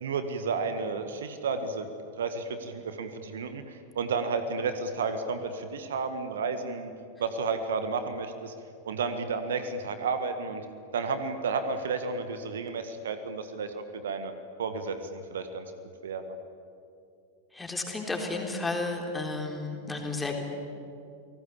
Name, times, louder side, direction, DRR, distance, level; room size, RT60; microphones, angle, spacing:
voice 1, 0.0-1.9 2.2-6.9 7.2-8.5 8.9-10.7 10.9-14.3 14.6-15.7 16.0-16.4, right 4 dB, 65° right, 9 dB, 1.7 m, -32 dB
voice 2, 17.5-20.4, left 3 dB, 10° left, 2 dB, 3.8 m, -32 dB
29.5 x 18.5 x 8.6 m, 2.6 s
figure-of-eight pair, 90°, 0 cm